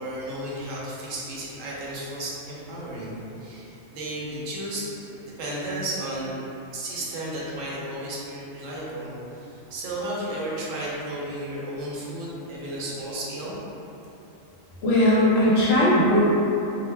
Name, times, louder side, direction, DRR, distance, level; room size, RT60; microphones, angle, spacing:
voice 1, 0.0-4.9 5.3-6.3 6.7-13.6, right 1 dB, 75° right, -6 dB, 1.0 m, -33 dB
voice 2, 14.8-16.2, left 1 dB, 65° left, -8 dB, 0.7 m, -18 dB
2.6 x 2.0 x 3.2 m, 3.0 s
omnidirectional pair, 1.4 m